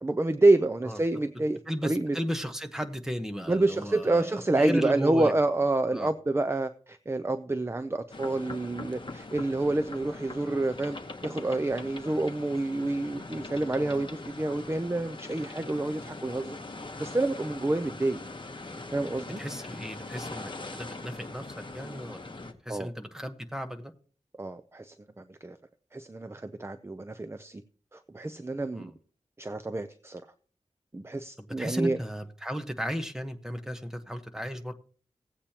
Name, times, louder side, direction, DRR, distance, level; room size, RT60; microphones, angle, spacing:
voice 1, 0.0-2.2 3.5-11.0 11.2-16.6 17.0-18.2 18.9-19.4 22.7-22.9 24.4-25.6 25.9-27.6 27.9-28.9 29.4-30.2 30.9-32.0, right 2 dB, 20° right, 0.5 m, -28 dB
voice 2, 1.7-5.3 5.9-6.1 19.4-21.4 21.7-23.9 28.7-28.9 31.4-34.7, equal, 5° right, 1.1 m, -35 dB
sound 1, 8.1-22.5, left 2 dB, 40° left, 1.1 m, -42 dB
16.5 x 8.5 x 2.9 m
wide cardioid pair, 80°, 12 cm